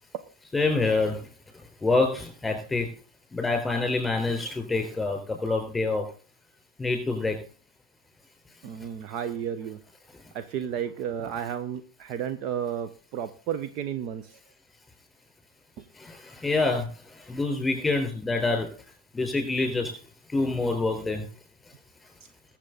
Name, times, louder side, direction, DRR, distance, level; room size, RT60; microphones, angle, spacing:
voice 1, 0.5-1.1 1.8-2.9 3.3-6.0 6.8-7.3 16.4-16.8 17.3-18.7 19.2-19.9 20.3-21.2, left 3 dB, 5° left, 6 dB, 4.1 m, -26 dB
voice 2, 8.6-9.8 10.3-14.4, right 9 dB, 40° right, 10 dB, 0.8 m, -32 dB
21.5 x 7.4 x 3.9 m, 0.39 s
figure-of-eight pair, 90°, 0 cm